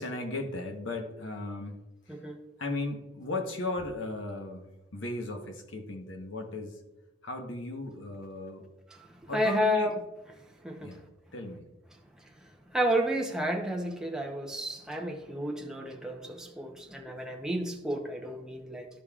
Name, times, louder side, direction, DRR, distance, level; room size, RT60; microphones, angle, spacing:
voice 1, 0.0-2.2 2.6-6.8 7.2-8.7 9.3-9.9 10.8-11.0 11.3-11.6, left 2 dB, 70° left, 3 dB, 1.1 m, -36 dB
voice 2, 8.9-10.0 10.4-11.0 12.2-18.9, equal, 5° right, 1 dB, 0.8 m, -32 dB
12.5 x 5.2 x 2.4 m, 0.99 s
head